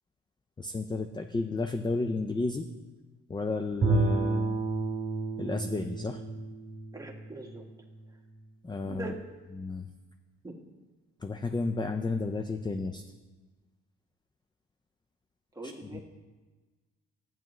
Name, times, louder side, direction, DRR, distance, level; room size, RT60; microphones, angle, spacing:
voice 1, 0.6-2.6 3.3-4.6 5.4-6.2 8.6-9.1 9.6-9.9 11.2-13.0 15.8-16.0, left 3 dB, 15° left, 6 dB, 0.5 m, -32 dB
Bowed string instrument, 3.8-8.0, right 3 dB, 30° right, 1.3 m, -31 dB
voice 2, 6.9-7.6 8.8-9.2 10.4-10.6 15.5-16.0, right 2 dB, 10° right, 0 dB, 1.4 m, -41 dB
12.5 x 8.9 x 3.1 m, 1.3 s
cardioid pair, 90°, 30 cm